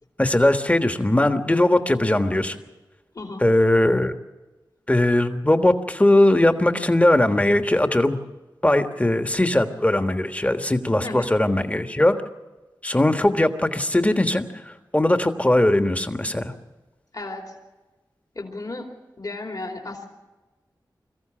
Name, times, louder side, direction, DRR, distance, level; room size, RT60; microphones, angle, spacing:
voice 1, 0.2-2.6 3.4-4.1 4.9-8.2 8.6-12.2 12.8-16.5, left 1 dB, 20° left, 7 dB, 1.5 m, -20 dB
voice 2, 3.1-3.5 11.0-11.3 17.1-17.5 18.3-18.9 19.2-20.1, left 2 dB, 50° left, 2 dB, 2.8 m, -34 dB
22.0 x 14.5 x 8.9 m, 1.1 s
wide cardioid pair, 55°, 8 cm